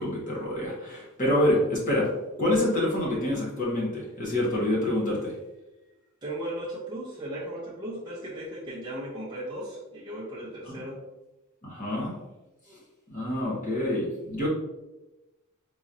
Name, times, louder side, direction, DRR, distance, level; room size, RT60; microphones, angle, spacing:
voice 1, 0.0-2.1 2.4-5.3 10.6-10.8 11.6-12.1 13.1-14.5, left 1 dB, 35° left, -4 dB, 1.2 m, -27 dB
voice 2, 6.2-11.0, right 1 dB, 20° right, -7 dB, 0.7 m, -36 dB
4.0 x 2.9 x 2.5 m, 1.0 s
head